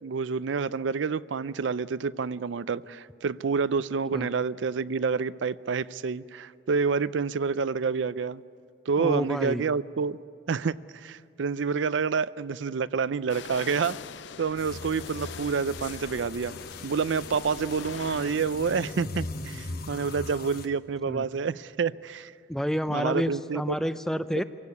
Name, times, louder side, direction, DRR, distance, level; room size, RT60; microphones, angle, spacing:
voice 1, 0.0-8.4 8.9-10.2 10.5-14.0 14.4-16.5 16.8-22.3 22.9-23.6, right 5 dB, 80° right, 16 dB, 0.5 m, -28 dB
voice 2, 9.0-9.6 21.1-21.2 22.5-24.4, equal, 5° left, 12 dB, 0.5 m, -29 dB
sound 1, 13.3-18.9, left 7 dB, 70° left, 0.5 m, -43 dB
sound 2, 14.6-20.7, left 2 dB, 55° left, 1.1 m, -39 dB
24.5 x 17.0 x 9.6 m, 2.3 s
head